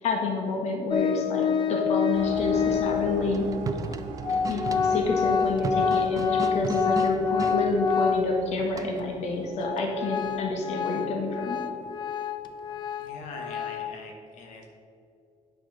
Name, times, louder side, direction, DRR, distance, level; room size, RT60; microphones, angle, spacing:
voice 1, 0.0-3.5 4.5-11.6, left 2 dB, 60° left, 2 dB, 1.4 m, -29 dB
Organ, 0.9-3.2 3.9-4.0 4.2-8.6 9.0-9.1 9.6-14.0, left 7 dB, 40° left, 0.6 m, -27 dB
sound 1, 2.1-9.7, right 4 dB, 85° right, 1.2 m, -40 dB
sound 2, 3.3-7.6 8.8-9.2, right 5 dB, 30° right, 0.6 m, -36 dB
voice 2, 13.0-14.7, left 3 dB, 80° left, 2 dB, 1.4 m, -42 dB
9.0 x 6.2 x 6.0 m, 2.4 s
cardioid pair, 145°, 12 cm